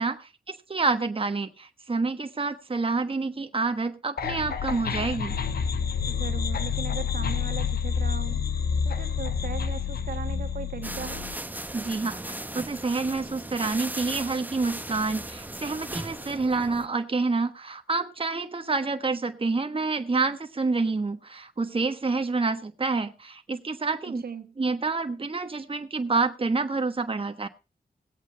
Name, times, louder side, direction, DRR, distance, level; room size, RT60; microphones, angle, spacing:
voice 1, 0.0-5.4 11.7-24.2 24.6-27.5, right 3 dB, 35° right, 1.2 m, -28 dB
sound 1, 4.2-11.3, left 6 dB, 85° left, 1.0 m, -28 dB
voice 2, 6.1-8.4 8.8-11.3 24.0-24.6, right 7 dB, 75° right, 1.3 m, -38 dB
sound 2, 10.8-16.9, right 1 dB, 10° right, 1.0 m, -37 dB
18.5 x 8.2 x 4.2 m
cardioid pair, 55°, 16 cm